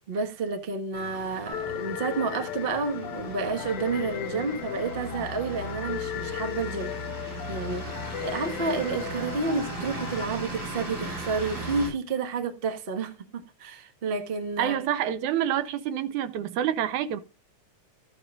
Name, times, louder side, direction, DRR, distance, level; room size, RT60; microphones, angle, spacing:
voice 1, 0.1-14.8, right 4 dB, 35° right, 0.9 m, -30 dB
sound 1, 0.9-11.9, right 2 dB, 55° right, 8.4 m, -38 dB
sound 2, 1.5-10.3, left 12 dB, 85° left, 2.1 m, -36 dB
voice 2, 14.6-17.2, right 10 dB, 80° right, 2.2 m, -27 dB
13.5 x 8.9 x 2.5 m
omnidirectional pair, 3.4 m